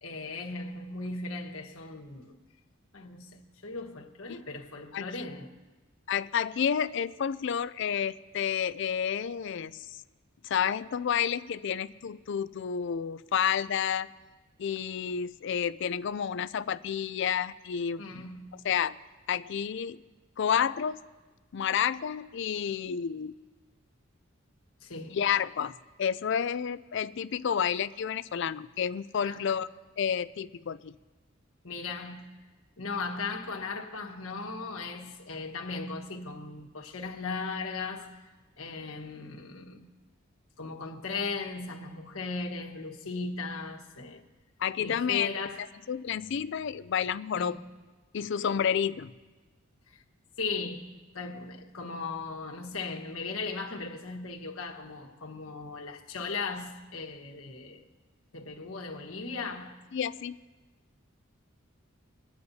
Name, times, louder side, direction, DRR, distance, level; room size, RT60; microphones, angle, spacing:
voice 1, 0.0-2.4 2.9-5.5 18.0-18.7 24.8-25.2 29.2-29.4 31.6-32.3 32.8-38.2 38.6-39.9 40.6-44.2 44.8-45.6 47.3-47.6 49.9-50.0 50.4-57.8 58.3-59.8, left 4 dB, 85° left, 1.4 m, -37 dB
voice 2, 4.9-5.3 6.1-10.0 10.4-14.1 14.6-18.0 18.6-19.0 19.3-20.0 20.4-21.0 21.5-23.3 25.1-29.7 30.0-31.0 44.6-45.3 45.9-47.6 48.1-49.1 59.9-60.4, left 8 dB, 60° left, 0.4 m, -30 dB
26.5 x 9.6 x 2.8 m
head